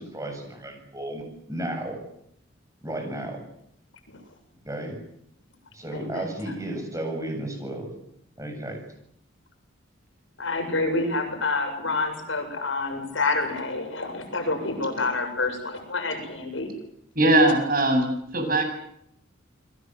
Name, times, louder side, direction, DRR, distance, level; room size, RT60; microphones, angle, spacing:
voice 1, 0.0-2.0 2.8-3.4 4.6-5.0 5.7-7.9 8.4-8.8, right 1 dB, 15° right, 4 dB, 7.7 m, -33 dB
voice 2, 5.9-6.3 10.4-16.7, left 3 dB, 70° left, 5 dB, 7.6 m, -28 dB
voice 3, 17.1-18.6, right 1 dB, 45° right, 5 dB, 7.9 m, -20 dB
29.5 x 22.0 x 8.2 m, 0.74 s
head